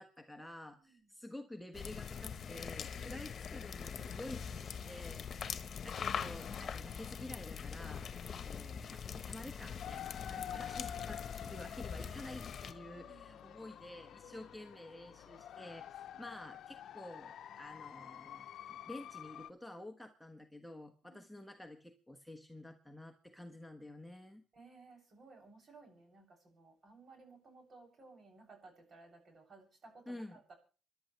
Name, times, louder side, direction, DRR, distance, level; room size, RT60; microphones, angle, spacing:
voice 1, 0.0-5.2 5.8-8.1 8.4-24.4 30.1-30.4, left 1 dB, ahead, 4 dB, 1.4 m, -50 dB
sound 1, 1.7-12.7, left 7 dB, 50° left, 1.2 m, -43 dB
voice 2, 2.9-3.3 10.2-10.8 12.9-13.5 14.2-14.5 16.1-16.3 21.0-21.4 24.5-30.5, right 3 dB, 45° right, 2 dB, 7.6 m, -59 dB
sound 2, 9.8-19.5, left 10 dB, 70° left, 0.7 m, -48 dB
27.0 x 11.5 x 3.3 m, 0.37 s
cardioid pair, 90°, 0 cm